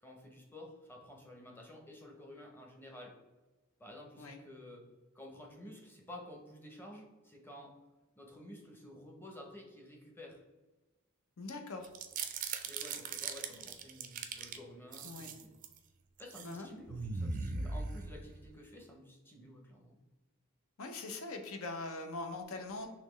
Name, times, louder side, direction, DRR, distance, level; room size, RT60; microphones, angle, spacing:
voice 1, 0.0-3.1 3.8-4.8 5.1-7.7 8.2-10.4 12.6-15.6 16.2-20.0, left 1 dB, 10° left, 0 dB, 0.7 m, -51 dB
voice 2, 11.4-11.9 15.0-15.3 16.4-16.7 20.8-22.9, left 3 dB, 75° left, 5 dB, 0.6 m, -42 dB
sound 1, 11.8-14.6 14.9-15.8 16.2-16.5 16.9-18.5, right 4 dB, 40° right, 0.4 m, -39 dB
4.1 x 3.0 x 3.1 m, 1.2 s
head